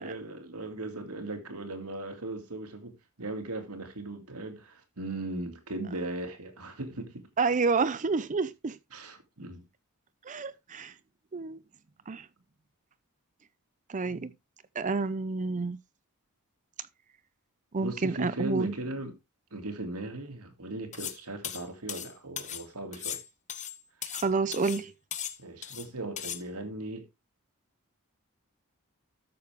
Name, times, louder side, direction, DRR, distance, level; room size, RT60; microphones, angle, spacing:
voice 1, 0.0-7.3 8.9-9.6 14.1-14.3 17.8-19.2 19.5-23.2 25.4-27.1, right 2 dB, 85° right, 2.4 m, -38 dB
voice 2, 7.4-8.8 10.3-10.9 11.3-11.6 12.1-12.3 13.9-14.3 14.8-15.8 17.7-18.7 24.1-24.9, right 4 dB, 35° right, 0.6 m, -29 dB
sound 1, 20.9-21.2 21.4-22.6 22.9-24.3 24.5-24.8 25.1-25.9 26.2-26.4, left 9 dB, 35° left, 1.0 m, -37 dB
13.5 x 6.4 x 3.5 m
head